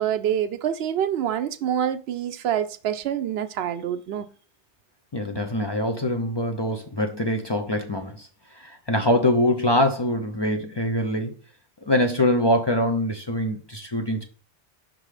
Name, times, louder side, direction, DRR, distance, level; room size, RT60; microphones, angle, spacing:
voice 1, 0.0-4.3, right 10 dB, 75° right, 0.8 m, -26 dB
voice 2, 5.1-8.3 8.5-11.3 11.9-14.2, left 1 dB, 30° left, 0.5 m, -24 dB
5.5 x 3.8 x 4.8 m
omnidirectional pair, 1.1 m